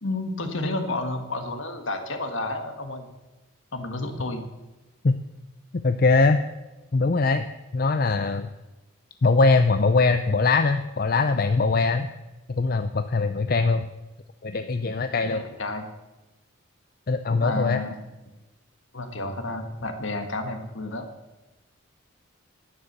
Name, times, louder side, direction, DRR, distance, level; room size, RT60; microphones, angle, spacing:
voice 1, 0.0-3.1 3.7-4.4 15.2-15.9 17.3-17.9 18.9-21.1, left 2 dB, 65° left, 6 dB, 1.7 m, -31 dB
voice 2, 5.7-6.4 6.9-7.5 7.7-8.5 9.2-12.1 12.5-13.8 14.4-15.4 17.1-17.8, left 3 dB, 45° left, 9 dB, 0.5 m, -21 dB
11.0 x 9.7 x 6.7 m, 1.1 s
head